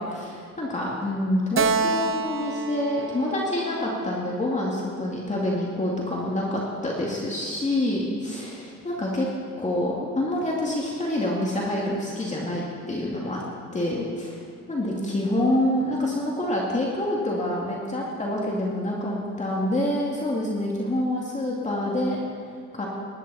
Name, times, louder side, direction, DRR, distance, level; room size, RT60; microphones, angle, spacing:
voice 1, 0.0-9.3 9.6-13.4 13.7-14.4 14.7-22.2 22.7-22.9, left 1 dB, 25° left, -4 dB, 2.4 m, -27 dB
Keyboard (musical), 1.5-5.0, right 4 dB, 45° right, 0.8 m, -28 dB
19.5 x 11.5 x 4.2 m, 2.3 s
cardioid pair, 90°, 30 cm